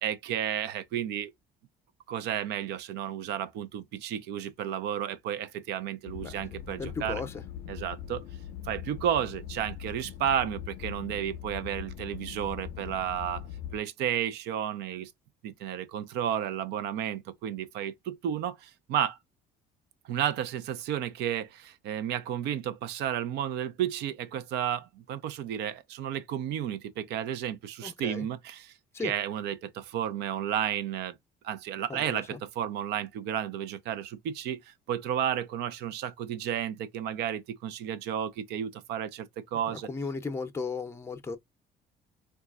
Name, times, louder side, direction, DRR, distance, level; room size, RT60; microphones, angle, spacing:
voice 1, 0.0-1.3 2.1-7.2 7.7-8.2 8.6-13.5 13.7-15.1 15.4-19.2 20.1-28.7 29.0-31.1 31.4-39.9, right 10 dB, 85° right, 0.6 m, -32 dB
sound 1, 6.1-13.8, left 10 dB, 65° left, 0.4 m, -41 dB
voice 2, 6.8-7.4 27.8-28.3 28.9-29.1 31.9-32.4 39.6-41.4, left 4 dB, 15° left, 0.5 m, -36 dB
3.9 x 2.3 x 2.4 m
cardioid pair, 110°, 17 cm